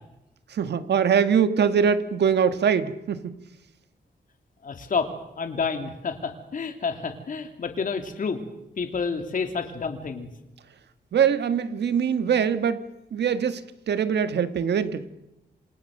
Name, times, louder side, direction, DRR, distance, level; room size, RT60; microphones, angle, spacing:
voice 1, 0.5-3.3 11.1-12.8 13.1-13.6 13.9-15.0, right 7 dB, 90° right, 1.7 m, -22 dB
voice 2, 4.6-8.4 8.8-10.3, left 5 dB, 50° left, 3.1 m, -29 dB
27.5 x 27.0 x 6.6 m
wide cardioid pair, 150°, 17 cm